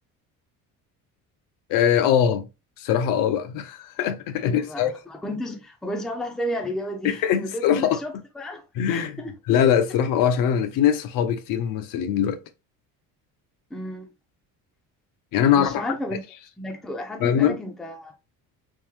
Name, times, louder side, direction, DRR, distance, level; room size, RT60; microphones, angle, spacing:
voice 1, 1.7-2.5 2.8-4.9 7.0-8.0 8.8-9.2 9.5-12.4 15.3-15.8 17.2-17.6, left 9 dB, 70° left, 0.6 m, -22 dB
voice 2, 4.4-8.6 8.9-9.3 13.7-14.1 15.5-16.2 16.6-18.1, equal, ahead, 0.4 m, -32 dB
3.6 x 2.7 x 3.0 m
cardioid pair, 155°, 34 cm